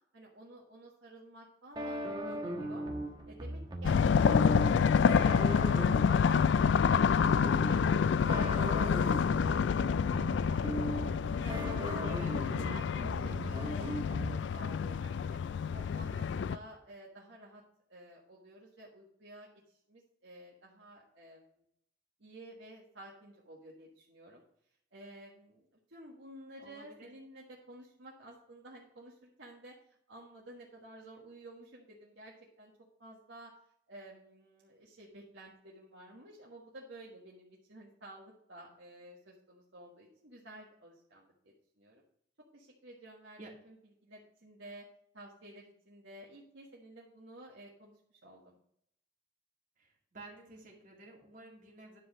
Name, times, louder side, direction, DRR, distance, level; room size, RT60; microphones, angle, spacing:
voice 1, 0.1-2.9 3.2-7.2 7.6-12.0 12.4-15.4 15.7-17.6 17.9-21.6 22.2-24.4 24.9-32.7 33.0-33.5 33.9-42.0 42.5-43.4 43.6-44.8 45.1-48.6, right 1 dB, 75° right, -4 dB, 1.5 m, -53 dB
sound 1, 1.8-14.7, right 1 dB, 25° right, 1.3 m, -39 dB
sound 2, 3.8-16.6, left 6 dB, 70° left, 0.3 m, -28 dB
voice 2, 12.0-12.3 26.6-27.1 43.4-43.5 49.8-52.0, right 2 dB, 45° right, -2 dB, 2.5 m, -51 dB
10.5 x 4.7 x 6.1 m, 0.72 s
head